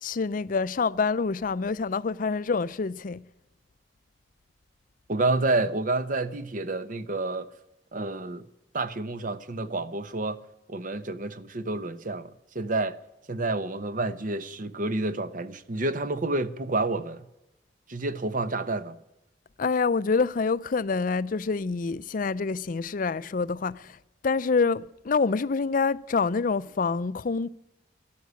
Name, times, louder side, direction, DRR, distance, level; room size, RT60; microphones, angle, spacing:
voice 1, 0.0-3.2 19.6-24.0 24.2-27.5, left 4 dB, 50° left, 0.5 m, -26 dB
voice 2, 5.1-7.5 7.9-8.4 8.7-10.4 10.7-13.0 13.3-17.3 17.9-19.0, right 2 dB, 50° right, 0.9 m, -29 dB
13.0 x 11.5 x 9.4 m
head